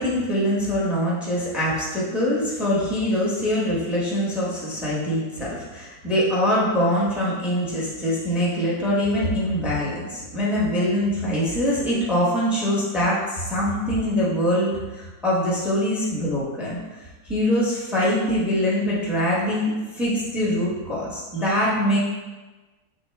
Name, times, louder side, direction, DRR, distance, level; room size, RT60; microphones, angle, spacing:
voice 1, 0.0-16.8 17.2-22.0, equal, ahead, -6 dB, 0.7 m, -23 dB
6.3 x 2.4 x 3.4 m, 1.2 s
omnidirectional pair, 1.7 m